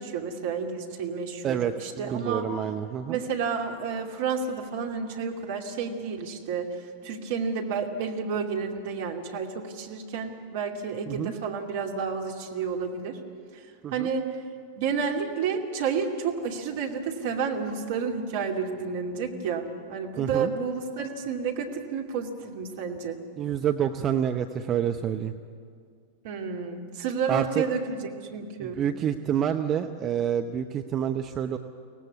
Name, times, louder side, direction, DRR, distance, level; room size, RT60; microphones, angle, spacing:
voice 1, 0.0-2.5 3.1-13.2 13.5-13.7 13.9-14.3 14.8-23.2 26.2-28.8, right 5 dB, 55° right, 1 dB, 2.5 m, -30 dB
voice 2, 1.4-3.2 11.1-11.3 13.8-14.1 20.2-20.5 23.4-25.3 27.3-27.6 28.6-31.6, right 9 dB, 30° right, 7 dB, 0.8 m, -28 dB
24.0 x 18.0 x 8.4 m, 2.2 s
figure-of-eight pair, 90°, 0 cm